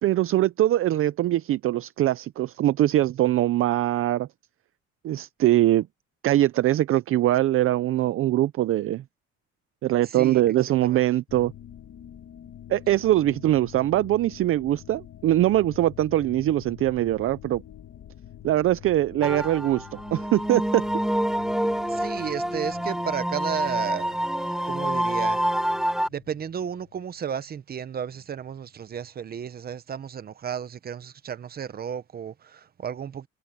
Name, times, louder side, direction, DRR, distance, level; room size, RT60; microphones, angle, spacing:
voice 1, 0.0-4.3 5.0-5.9 6.2-9.0 9.8-11.5 12.7-17.6 18.4-20.9, right 14 dB, 50° right, 0.5 m, -22 dB
voice 2, 10.0-10.4 10.8-11.0 21.9-25.4 26.1-33.3, right 8 dB, 30° right, 0.9 m, -33 dB
sound 1, 11.3-27.2, left 11 dB, 50° left, 2.2 m, -47 dB
sound 2, 19.2-26.1, equal, ahead, 0.6 m, -27 dB
cardioid pair, 155°, 29 cm